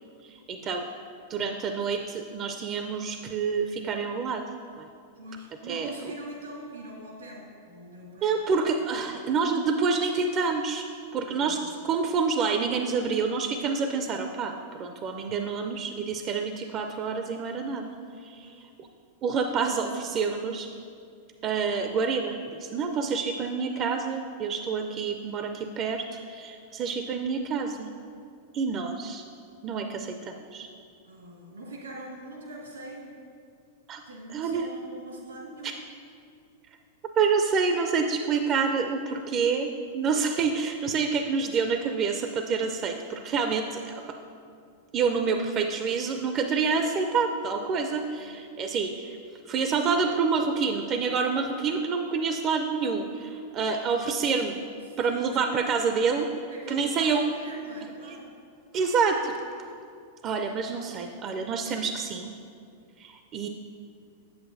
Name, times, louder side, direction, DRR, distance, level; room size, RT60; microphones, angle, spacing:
voice 1, 0.2-0.9 1.3-4.4 4.8-4.9 5.7-5.9 8.2-10.9 11.1-17.8 18.2-18.9 19.2-20.7 21.4-27.9 28.5-29.2 29.6-30.7 33.9-34.0 34.3-34.7 35.6-35.7 37.2-44.0 44.9-49.2 49.5-54.6 55.0-56.3 56.7-57.2 58.0-58.2 58.7-59.7 60.2-62.3 63.0-63.5, right 5 dB, 35° right, 5 dB, 0.4 m, -28 dB
voice 2, 5.1-8.4 9.0-9.3 11.3-11.6 18.4-18.6 31.0-33.1 34.0-35.7 48.1-48.5 54.9-55.3 56.5-58.3, right 1 dB, 85° right, -2 dB, 1.8 m, -43 dB
7.9 x 7.6 x 2.6 m, 2.3 s
hypercardioid pair, 100°, 0 cm